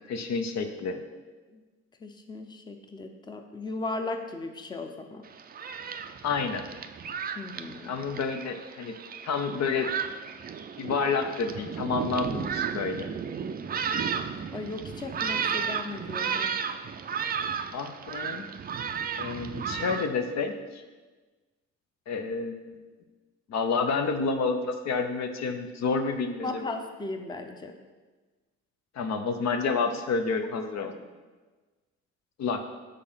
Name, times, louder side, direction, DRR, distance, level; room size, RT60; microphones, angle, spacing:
voice 1, 0.1-1.0 6.2-6.7 7.9-8.9 9.2-9.9 10.8-13.1 17.7-18.5 19.2-20.8 22.1-22.8 23.5-26.8 28.9-30.9 32.4-32.7, left 4 dB, 60° left, 6 dB, 0.7 m, -29 dB
voice 2, 2.0-5.2 7.3-8.0 14.0-16.5 26.4-27.8 30.8-31.0, left 2 dB, 15° left, 5 dB, 0.6 m, -37 dB
Thunderstorm, 5.3-20.1, right 7 dB, 30° right, 0.4 m, -34 dB
6.6 x 3.8 x 5.6 m, 1.3 s
cardioid pair, 90°, 30 cm